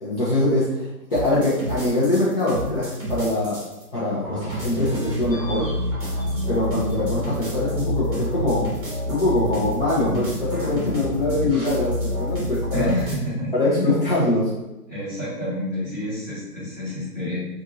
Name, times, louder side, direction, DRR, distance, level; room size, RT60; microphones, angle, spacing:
voice 1, 0.0-3.6 3.9-5.7 6.5-8.7 9.1-12.9 13.5-14.5, left 1 dB, 40° left, -9 dB, 0.7 m, -23 dB
sound 1, 1.1-3.8 4.2-13.2, equal, 25° right, 0.9 m, -28 dB
voice 2, 12.7-13.5 14.9-17.5, left 1 dB, 5° left, -17 dB, 1.1 m, -28 dB
2.6 x 2.5 x 2.9 m, 0.98 s
hypercardioid pair, 170°, 45 cm